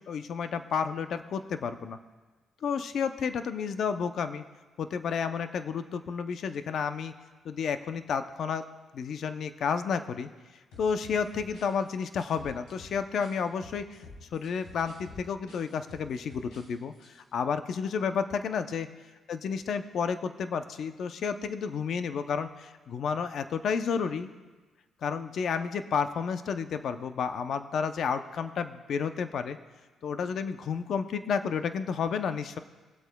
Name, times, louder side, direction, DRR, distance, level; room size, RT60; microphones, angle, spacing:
voice 1, 0.0-2.0 2.6-4.4 4.8-7.1 7.4-8.7 8.9-10.3 10.8-14.0 14.3-18.9 19.3-24.3 25.0-29.6 30.0-32.6, left 6 dB, 65° left, 10 dB, 0.6 m, -31 dB
sound 1, 10.7-13.3 13.6-16.7 16.9-17.1, left 2 dB, 80° left, 3.5 m, -49 dB
21.5 x 8.1 x 2.2 m, 1.3 s
cardioid pair, 90°, 0 cm